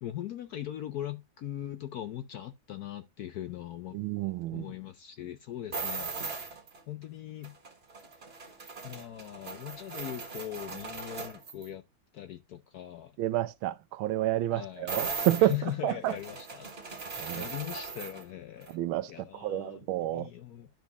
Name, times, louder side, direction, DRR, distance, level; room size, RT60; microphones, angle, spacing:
voice 1, 0.0-4.0 4.5-7.5 8.8-11.8 12.1-13.2 14.5-14.9 15.4-18.8 19.1-20.7, left 12 dB, 70° left, 0.9 m, -40 dB
voice 2, 3.9-4.7 13.2-15.5 15.8-16.1 17.2-17.5 18.7-20.3, right 14 dB, 85° right, 1.5 m, -29 dB
sound 1, 5.7-6.8 7.4-11.7 14.9-18.3 18.6-18.7, right 4 dB, 35° right, 1.6 m, -39 dB
12.0 x 5.1 x 2.4 m
omnidirectional pair, 2.2 m